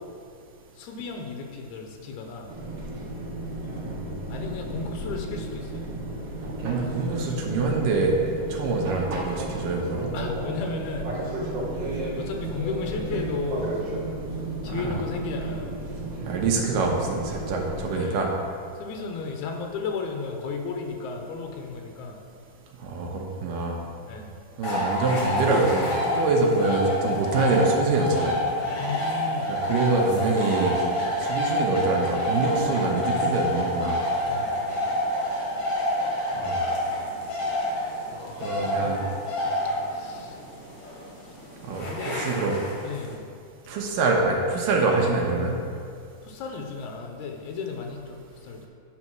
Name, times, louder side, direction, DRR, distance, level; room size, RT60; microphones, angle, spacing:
voice 1, 0.7-2.5 4.3-5.9 10.1-11.1 12.2-13.8 14.6-15.7 17.9-18.3 18.8-22.2 24.1-24.3 28.6-29.6 34.2-34.8 38.1-39.2 39.9-40.4 41.8-42.3 42.8-43.3 46.2-48.7, left 4 dB, 85° left, 3 dB, 1.6 m, -34 dB
Fixed-wing aircraft airplane, 2.5-17.9, right 2 dB, 55° right, 1.9 m, -33 dB
voice 2, 6.6-8.1 8.5-10.1 14.7-15.0 16.3-18.3 22.8-23.8 24.6-28.4 29.6-30.8 31.2-34.0 36.4-36.6 38.4-39.0 41.7-42.6 43.7-45.5, right 3 dB, 75° right, 0 dB, 2.3 m, -25 dB
sound 1, 24.6-43.1, left 1 dB, 55° left, 1.1 m, -28 dB
9.0 x 4.1 x 6.0 m, 2.4 s
omnidirectional pair, 4.3 m